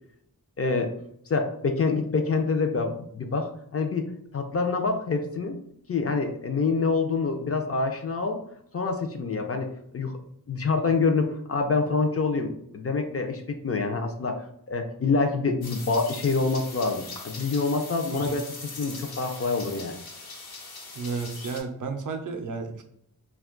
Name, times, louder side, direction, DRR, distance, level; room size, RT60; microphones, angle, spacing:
voice 1, 0.6-0.9 1.3-4.1 4.3-5.6 5.9-8.4 8.7-9.7 9.9-10.2 10.5-14.4 14.7-18.4 18.8-19.9, left 4 dB, 40° left, 4 dB, 0.4 m, -26 dB
sound 1, 15.6-21.6, left 3 dB, 80° left, 0.8 m, -41 dB
voice 2, 20.9-22.8, right 4 dB, 60° right, 6 dB, 0.5 m, -32 dB
2.5 x 2.3 x 3.6 m, 0.74 s
wide cardioid pair, 100°, 36 cm